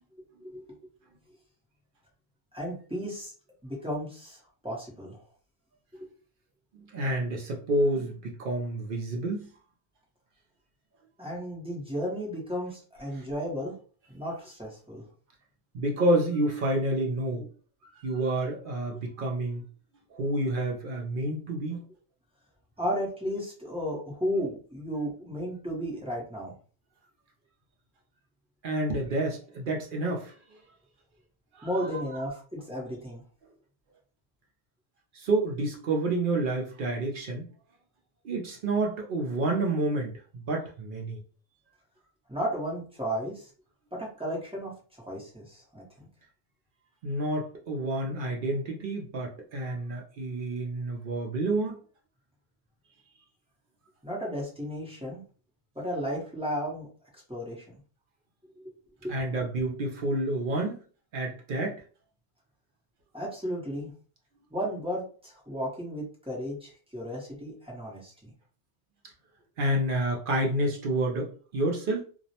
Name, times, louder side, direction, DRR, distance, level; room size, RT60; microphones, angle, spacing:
voice 1, 0.2-0.8 2.5-3.3 3.6-5.2 5.9-6.1 11.2-13.8 14.1-15.0 18.9-19.0 22.8-26.5 31.6-33.2 42.3-43.5 43.9-46.1 54.0-55.2 55.7-56.9 57.1-57.7 58.6-58.7 59.0-59.2 63.1-63.9 64.5-68.3, equal, 5° right, 0.5 m, -34 dB
voice 2, 6.9-9.5 15.7-17.5 18.0-19.6 20.1-21.8 28.6-30.3 31.5-31.7 35.1-37.5 38.2-41.2 47.0-51.7 59.1-60.8 61.1-61.8 69.6-72.0, right 1 dB, 60° right, 0.5 m, -29 dB
2.4 x 2.0 x 2.7 m
omnidirectional pair, 1.3 m